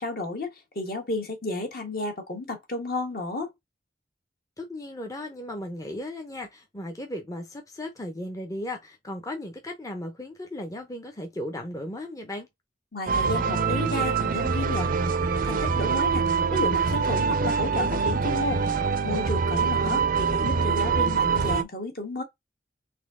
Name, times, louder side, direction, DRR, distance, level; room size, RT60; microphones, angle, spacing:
voice 1, 0.0-3.5 12.9-15.1 15.4-18.6 19.0-20.0 20.3-22.2, left 2 dB, 55° left, 1.5 m, -32 dB
voice 2, 4.6-12.5 19.8-20.0 20.4-20.7, left 1 dB, 20° left, 0.7 m, -36 dB
sound 1, 13.1-21.6, right 5 dB, 55° right, 0.5 m, -24 dB
4.2 x 2.7 x 3.6 m
head